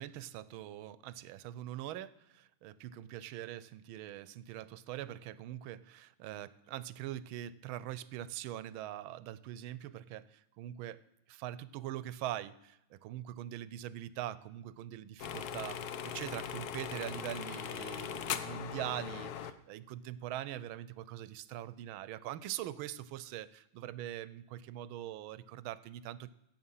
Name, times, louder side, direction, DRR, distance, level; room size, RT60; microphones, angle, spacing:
voice 1, 0.0-11.0 11.3-26.3, right 12 dB, 90° right, 18 dB, 1.4 m, -43 dB
sound 1, 15.2-19.5, left 8 dB, 65° left, 1.0 m, -40 dB
16.5 x 7.5 x 5.5 m, 0.83 s
omnidirectional pair, 2.2 m